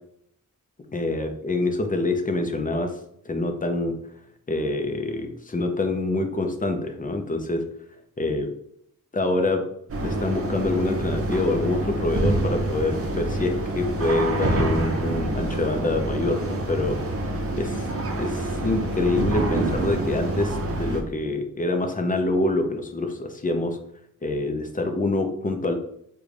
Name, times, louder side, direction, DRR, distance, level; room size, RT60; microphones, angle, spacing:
voice 1, 0.9-2.9 3.3-4.0 4.5-7.6 8.2-8.5 9.1-9.6 10.0-17.0 17.6-17.9 18.2-23.8 24.2-25.7, left 2 dB, 25° left, 5 dB, 0.5 m, -26 dB
sound 1, 9.9-21.0, right 2 dB, 45° right, 0.6 m, -27 dB
3.7 x 2.2 x 3.2 m, 0.70 s
wide cardioid pair, 95°, 33 cm